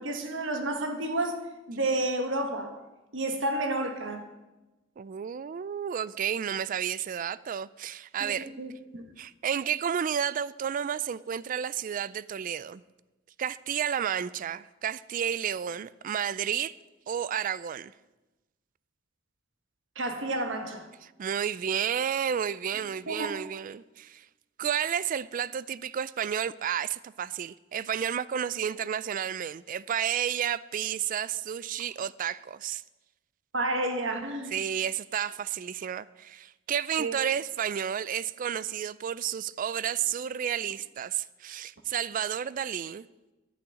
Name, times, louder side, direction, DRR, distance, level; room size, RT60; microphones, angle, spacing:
voice 1, 0.0-1.4 1.7-2.8 3.1-4.2 8.2-9.1 19.9-20.9 23.1-23.3 33.5-34.5 37.0-37.1, right 2 dB, 65° right, 1.6 m, -30 dB
voice 2, 5.0-8.5 9.2-12.8 13.4-16.7 17.1-17.9 21.0-24.3 24.6-32.8 34.5-43.1, right 8 dB, 40° right, 0.3 m, -31 dB
12.0 x 6.2 x 8.6 m
head